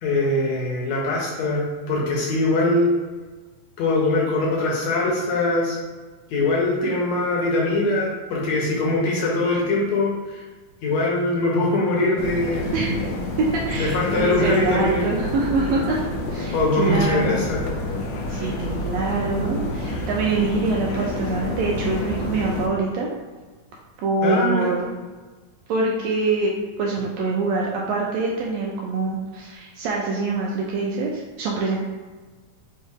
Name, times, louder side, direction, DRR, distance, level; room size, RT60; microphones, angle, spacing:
voice 1, 0.0-2.9 3.8-5.8 6.3-10.4 10.8-12.7 13.8-15.1 16.5-17.6 18.3-18.5 24.2-24.7, left 2 dB, 70° left, -3 dB, 1.9 m, -22 dB
sound 1, 12.2-22.7, left 1 dB, 90° left, 2.1 m, -29 dB
voice 2, 13.4-16.0 16.3-17.4 18.3-23.1 24.0-24.9 25.7-31.8, right 3 dB, 80° right, -2 dB, 1.6 m, -24 dB
5.4 x 2.7 x 3.5 m, 1.4 s
omnidirectional pair, 3.5 m